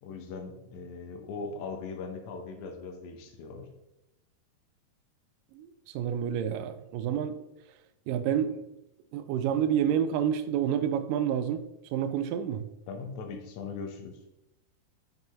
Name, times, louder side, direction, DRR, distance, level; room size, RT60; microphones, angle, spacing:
voice 1, 0.0-3.7 12.9-14.2, left 4 dB, 70° left, 3 dB, 1.8 m, -39 dB
voice 2, 5.5-7.4 8.1-8.6 9.1-11.6 11.9-12.6, right 9 dB, 90° right, 8 dB, 1.9 m, -29 dB
7.9 x 5.3 x 3.0 m, 0.90 s
omnidirectional pair, 4.5 m